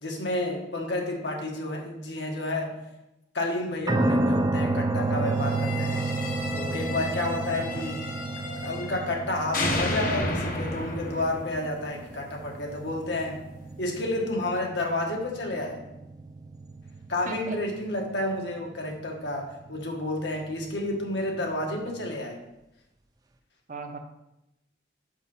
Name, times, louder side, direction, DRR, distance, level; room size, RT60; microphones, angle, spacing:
voice 1, 0.0-2.8 3.3-6.0 6.5-8.0 8.6-13.4 13.8-15.8 17.1-22.4, left 1 dB, 70° left, 1 dB, 1.5 m, -30 dB
sound 1, 3.9-22.2, right 2 dB, 20° right, 0.4 m, -31 dB
sound 2, 5.4-9.2 9.5-12.6, left 2 dB, 50° left, 1.0 m, -33 dB
voice 2, 7.5-7.9 17.3-17.6 23.7-24.0, right 3 dB, 45° right, 5 dB, 0.8 m, -38 dB
6.1 x 5.9 x 5.5 m, 0.90 s
head